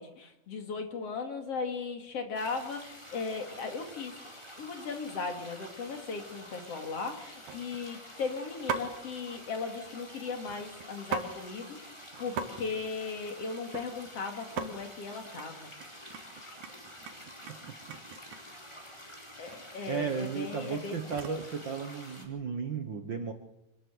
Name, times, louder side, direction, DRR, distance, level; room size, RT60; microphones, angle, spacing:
voice 1, 0.0-4.1 4.6-11.8 12.2-15.7 19.4-21.0, left 4 dB, 55° left, 5 dB, 3.3 m, -37 dB
sound 1, 2.3-22.3, equal, 10° left, 4.4 m, -49 dB
sound 2, 4.5-4.8 5.2-5.5 5.9-6.0 6.3-6.7 7.5-8.0 8.7-9.0 10.4-11.3 11.7-11.8 12.0-12.5 12.7-14.1 14.4-14.7 15.1-15.5 15.8-18.6 19.5-19.6 19.9-21.5 22.1-22.5, right 6 dB, 75° right, 3.0 m, -40 dB
voice 2, 19.9-23.3, right 5 dB, 50° right, 6 dB, 1.6 m, -34 dB
26.5 x 13.0 x 8.0 m, 0.88 s
omnidirectional pair, 3.5 m